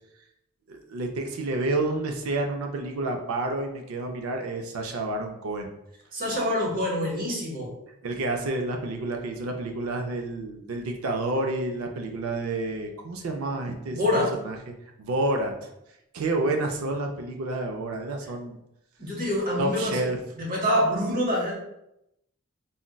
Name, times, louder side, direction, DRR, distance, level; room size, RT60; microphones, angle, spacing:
voice 1, 0.7-5.7 8.0-14.6 15.0-15.7 16.1-18.6 19.6-20.2, right 2 dB, 70° right, 3 dB, 0.4 m, -29 dB
voice 2, 6.1-7.7 13.9-14.3 19.0-20.0 20.4-21.6, left 1 dB, 40° right, -2 dB, 0.8 m, -26 dB
3.8 x 2.1 x 2.2 m, 0.83 s
head